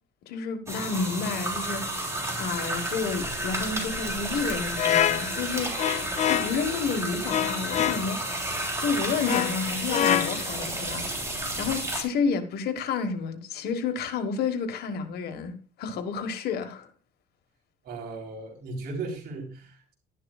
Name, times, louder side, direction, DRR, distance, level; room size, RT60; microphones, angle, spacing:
voice 1, 0.3-2.0 2.4-5.9 6.3-8.2 8.8-11.2 11.6-16.9, left 5 dB, 70° left, 1.5 m, -30 dB
sound 1, 0.7-12.0, right 1 dB, 15° right, 3.2 m, -31 dB
sound 2, 4.8-6.7 7.3-8.1 9.3-10.7, left 10 dB, 45° left, 0.4 m, -26 dB
voice 2, 17.8-19.9, right 3 dB, 70° right, 3.7 m, -37 dB
11.5 x 11.0 x 2.4 m
cardioid pair, 110°, 17 cm